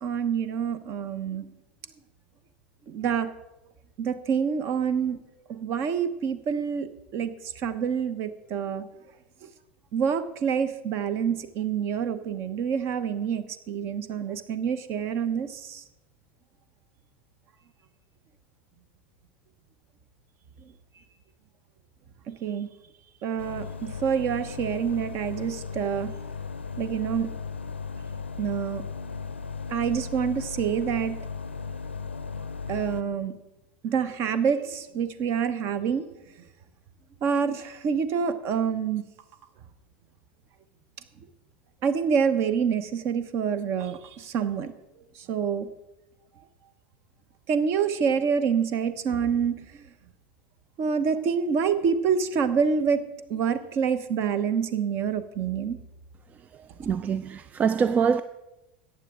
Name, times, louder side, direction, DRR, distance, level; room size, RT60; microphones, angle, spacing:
voice 1, 0.0-1.5 2.9-3.3 4.0-5.2 5.5-6.9 7.1-7.3 7.6-8.8 9.9-15.8 22.4-22.7 23.2-26.1 26.8-27.3 28.4-28.8 29.7-31.1 32.7-33.3 33.8-36.0 37.2-39.0 41.8-44.7 45.3-45.7 47.5-49.6 50.8-53.0 53.3-55.8, right 7 dB, 45° right, 1.0 m, -27 dB
sound 1, 23.4-33.0, left 5 dB, 90° left, 0.5 m, -36 dB
voice 2, 56.8-58.2, right 6 dB, 25° right, 0.4 m, -24 dB
14.5 x 9.5 x 3.8 m
figure-of-eight pair, 85°, 6 cm